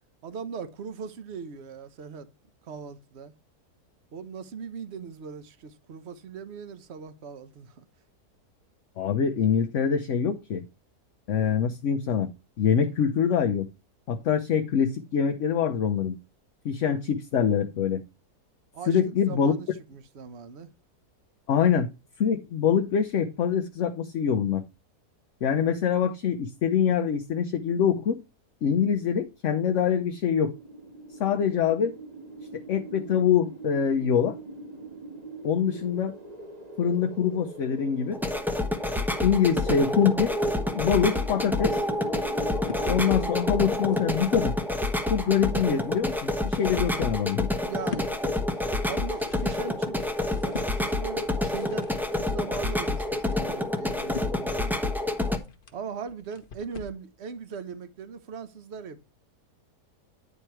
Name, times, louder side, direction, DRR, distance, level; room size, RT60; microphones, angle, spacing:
voice 1, 0.2-2.3 2.6-3.3 4.1-7.8 18.7-20.7 47.6-48.2 48.5-50.1 50.4-54.7 55.7-59.0, right 6 dB, 45° right, 1.1 m, -39 dB
voice 2, 9.0-10.6 11.3-12.3 12.6-13.7 14.1-16.2 16.6-18.0 18.9-19.5 21.5-21.9 22.2-24.6 25.4-28.2 28.6-30.5 31.2-31.9 32.7-34.4 35.4-36.2 36.8-38.2 39.2-40.3 40.7-41.8 42.8-44.5 45.1-47.5, left 7 dB, 60° left, 1.0 m, -24 dB
sound 1, 30.3-43.3, right 3 dB, 25° right, 1.6 m, -43 dB
sound 2, 38.1-55.4, left 1 dB, ahead, 0.8 m, -28 dB
sound 3, 42.5-42.9 43.6-44.5 45.0-45.6 46.2-57.0, left 4 dB, 35° left, 1.1 m, -44 dB
9.8 x 4.4 x 4.4 m
omnidirectional pair, 1.7 m